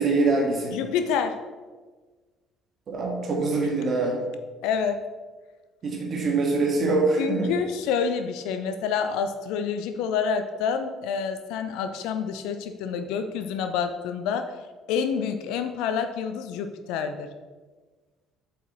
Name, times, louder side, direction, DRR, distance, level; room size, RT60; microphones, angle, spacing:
voice 1, 0.0-0.7 2.9-4.2 5.8-7.5, right 3 dB, 45° right, -1 dB, 1.7 m, -24 dB
voice 2, 0.7-1.4 4.6-5.0 7.2-14.5 14.9-17.3, left 6 dB, 65° left, 8 dB, 0.4 m, -28 dB
7.7 x 4.6 x 3.1 m, 1.3 s
figure-of-eight pair, 50°, 0 cm